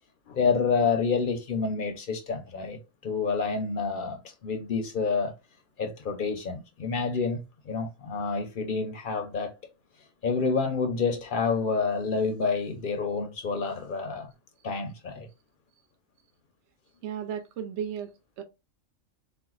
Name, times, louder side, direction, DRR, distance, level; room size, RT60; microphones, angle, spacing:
voice 1, 0.3-5.3 5.8-9.5 10.2-14.3 14.6-15.3, left 5 dB, 55° left, 0.6 m, -28 dB
voice 2, 17.0-18.4, right 8 dB, 65° right, 0.8 m, -35 dB
4.3 x 2.2 x 2.4 m
omnidirectional pair, 1.3 m